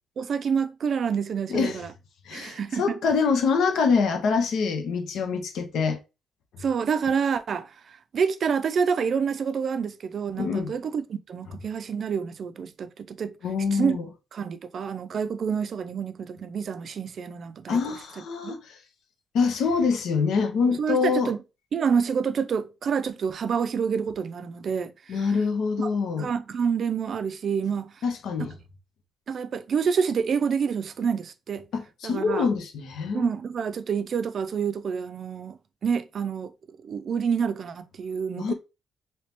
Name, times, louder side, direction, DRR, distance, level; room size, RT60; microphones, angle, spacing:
voice 1, 0.2-1.9 2.3-3.0 6.6-13.4 13.7-14.0 14.3-18.0 18.4-18.5 20.6-21.4 21.7-25.3 25.8-25.9 26.2-28.0 29.3-31.7 32.0-32.5 33.1-36.5 36.8-38.5, right 6 dB, 55° right, 0.4 m, -28 dB
voice 2, 2.3-6.0 10.4-10.7 13.4-14.1 17.7-18.6 19.3-21.3 25.1-26.3 28.0-28.5 31.7-33.3 38.4-38.5, left 5 dB, 75° left, 0.8 m, -25 dB
2.9 x 2.8 x 3.4 m
cardioid pair, 90°, 0 cm